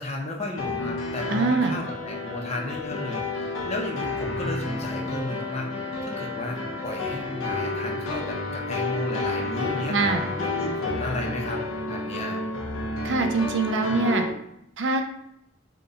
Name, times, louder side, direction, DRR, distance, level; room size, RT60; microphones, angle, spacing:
voice 1, 0.0-10.0 10.4-12.4 13.9-14.2, left 1 dB, 35° left, 1 dB, 0.6 m, -34 dB
sound 1, 0.6-14.3, left 2 dB, 85° left, 0.6 m, -30 dB
voice 2, 1.3-1.8 9.9-10.3 13.0-14.2 14.8-15.0, right 3 dB, 65° right, 5 dB, 0.4 m, -23 dB
3.8 x 2.2 x 3.8 m, 0.79 s
head